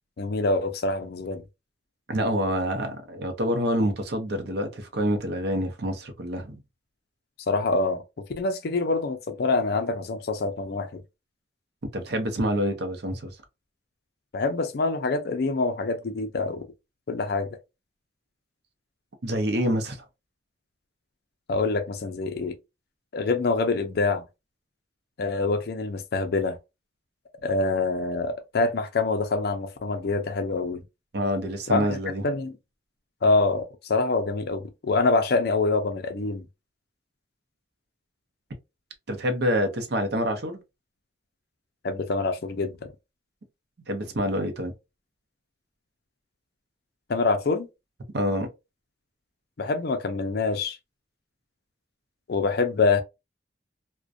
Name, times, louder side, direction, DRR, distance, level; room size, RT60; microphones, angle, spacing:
voice 1, 0.2-1.4 7.5-8.0 8.4-11.0 14.3-16.7 17.1-17.5 21.5-22.6 23.1-24.2 25.2-26.6 27.4-30.8 31.7-32.0 32.2-32.5 33.2-36.5 41.8-42.8 47.1-47.7 49.6-50.8 52.3-53.0, left 3 dB, 55° left, 0.4 m, -25 dB
voice 2, 2.1-6.6 11.9-13.4 19.2-20.1 31.1-32.2 39.1-40.6 43.9-44.7 48.1-48.5, equal, 60° right, 0.6 m, -27 dB
2.4 x 2.1 x 2.5 m
head